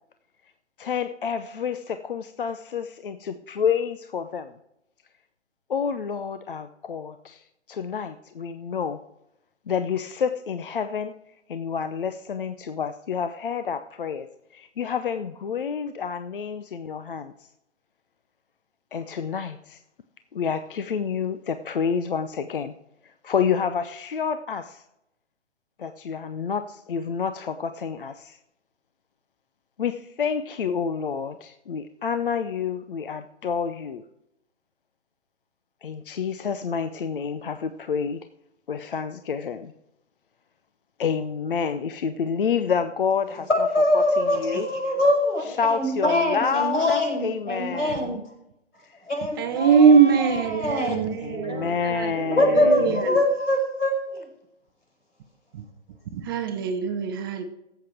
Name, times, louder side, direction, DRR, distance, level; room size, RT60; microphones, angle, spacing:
voice 1, 0.8-4.5 5.7-9.0 9.7-11.1 11.5-14.3 14.5-17.3 18.9-19.8 20.3-22.7 23.2-24.8 25.8-28.4 29.8-34.0 35.8-38.2 38.7-39.7 41.0-43.5 43.9-44.7 45.4-48.2 51.2-53.0, left 6 dB, 45° left, 0.7 m, -28 dB
voice 2, 43.5-48.2 49.1-51.7 52.3-54.3, left 1 dB, 80° left, 5.6 m, -24 dB
voice 3, 49.4-53.2 55.5-55.6 56.1-57.4, right 6 dB, 20° right, 0.7 m, -21 dB
16.5 x 8.0 x 4.5 m
figure-of-eight pair, 135°, 36 cm